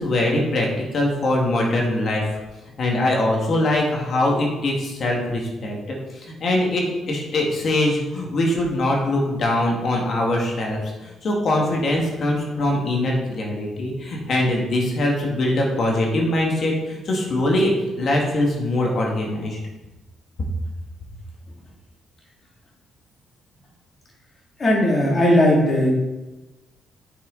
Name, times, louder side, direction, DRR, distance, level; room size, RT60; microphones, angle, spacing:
voice 1, 0.0-2.2 2.8-17.7 18.0-19.6, left 1 dB, 55° left, -1 dB, 1.9 m, -22 dB
voice 2, 24.6-25.9, left 1 dB, 40° left, -2 dB, 2.6 m, -17 dB
8.3 x 6.0 x 4.0 m, 1.1 s
cardioid pair, 90°, 0 cm